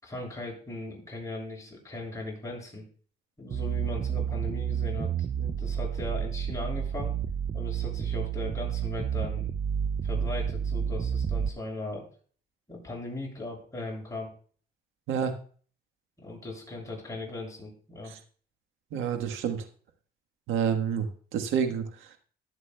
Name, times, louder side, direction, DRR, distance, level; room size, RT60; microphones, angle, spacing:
voice 1, 0.0-2.8 3.4-7.1 7.5-9.5 10.0-12.1 12.7-14.3 16.2-18.1, left 2 dB, 15° left, -2 dB, 6.8 m, -38 dB
sound 1, 3.5-11.5, right 8 dB, 30° right, 0.4 m, -30 dB
voice 2, 18.9-19.7 20.5-21.1 21.3-21.8, right 7 dB, 90° right, 6 dB, 1.4 m, -28 dB
21.5 x 8.3 x 2.3 m, 0.43 s
cardioid pair, 90°, 20 cm